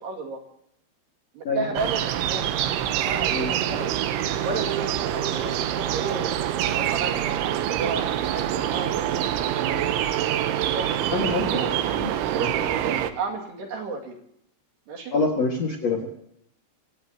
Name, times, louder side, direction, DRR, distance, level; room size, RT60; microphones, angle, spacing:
voice 1, 0.0-0.4 1.4-4.0 4.4-6.4 6.7-9.0 9.6-9.9 10.7-10.9 11.5-11.8 12.1-14.2 14.9-15.1, right 4 dB, 60° right, 1 dB, 4.1 m, -33 dB
sound 1, 1.8-13.1, right 11 dB, 80° right, 3.3 m, -26 dB
voice 2, 11.1-12.5 15.1-16.1, left 3 dB, 50° left, 1 dB, 2.2 m, -26 dB
26.0 x 17.5 x 2.9 m, 0.72 s
omnidirectional pair, 5.6 m